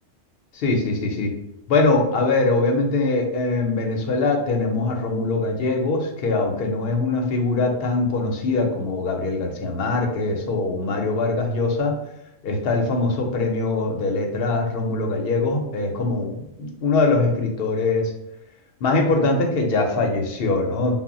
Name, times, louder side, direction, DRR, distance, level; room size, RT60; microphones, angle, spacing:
voice 1, 0.5-1.3 1.7-12.0 12.4-18.1 18.8-21.0, left 3 dB, 65° left, 3 dB, 0.7 m, -22 dB
2.1 x 2.0 x 3.7 m, 0.88 s
omnidirectional pair, 1.2 m